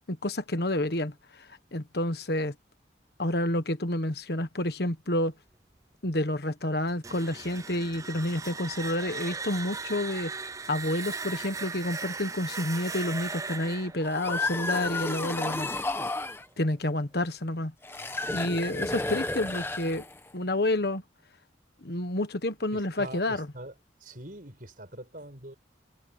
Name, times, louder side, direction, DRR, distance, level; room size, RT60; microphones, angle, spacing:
voice 1, 0.1-2.5 3.2-5.3 6.0-10.3 10.7-15.7 16.6-17.7 18.3-20.0 20.3-21.0 21.8-23.5, left 1 dB, 60° left, 1.4 m, -29 dB
sound 1, 6.9-15.7, right 4 dB, 20° right, 0.6 m, -38 dB
sound 2, 14.0-16.4 17.8-20.3, left 2 dB, 15° left, 1.2 m, -32 dB
voice 2, 22.7-23.7 24.0-25.5, right 1 dB, 50° right, 6.0 m, -43 dB
head